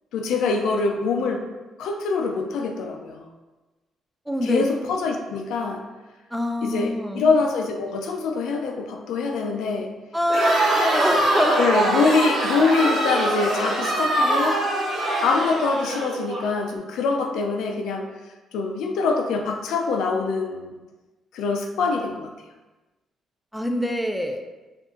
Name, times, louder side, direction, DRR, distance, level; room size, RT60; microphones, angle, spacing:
voice 1, 0.1-1.4 1.8-3.2 4.5-5.8 6.6-9.9 11.6-14.6 15.2-18.1 18.5-20.8 21.3-22.3, left 4 dB, 85° left, 3 dB, 0.6 m, -24 dB
voice 2, 4.3-4.7 6.3-7.2 10.1-11.7 23.5-24.4, equal, ahead, 4 dB, 0.5 m, -24 dB
Crowd, 10.2-16.4, right 1 dB, 70° right, 1.2 m, -23 dB
4.9 x 2.6 x 3.8 m, 1.2 s
cardioid pair, 90°, 0 cm